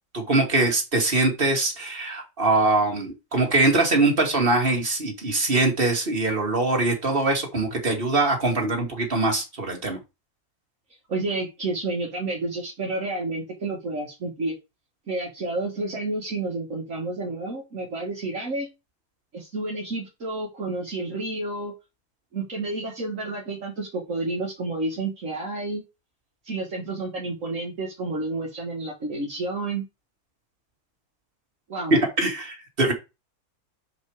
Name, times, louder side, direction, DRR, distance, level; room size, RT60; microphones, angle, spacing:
voice 1, 0.1-10.0 31.9-32.9, right 2 dB, 35° right, 1 dB, 2.7 m, -22 dB
voice 2, 11.1-14.5 15.1-18.7 19.3-21.7 22.3-25.8 26.4-29.8 31.7-31.9, right 2 dB, 55° right, -2 dB, 2.0 m, -30 dB
6.1 x 5.3 x 4.8 m, 0.25 s
omnidirectional pair, 1.6 m